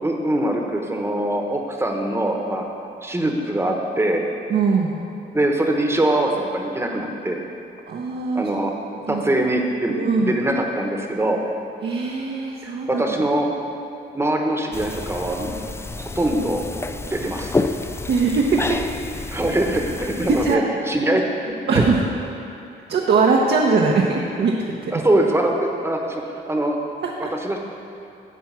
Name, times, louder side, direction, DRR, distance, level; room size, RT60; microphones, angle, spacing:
voice 1, 0.0-2.6 3.0-4.2 5.3-7.4 8.3-8.7 9.1-11.4 12.6-13.5 14.1-15.5 16.0-16.6 17.1-17.5 19.3-21.9 24.9-26.8 27.4-27.6, right 1 dB, 10° right, 2 dB, 1.1 m, -23 dB
voice 2, 4.5-5.0 7.9-8.5 9.1-9.2 10.0-10.3 11.8-13.0 18.1-18.8 19.2-19.4 20.3-20.6 21.7-22.0 22.9-24.5 24.8-24.9 27.2-27.3, right 4 dB, 55° right, -2 dB, 0.9 m, -20 dB
sound 1, 14.7-20.6, left 3 dB, 15° left, 0.3 m, -29 dB
9.2 x 4.6 x 7.3 m, 2.7 s
cardioid pair, 90°, 20 cm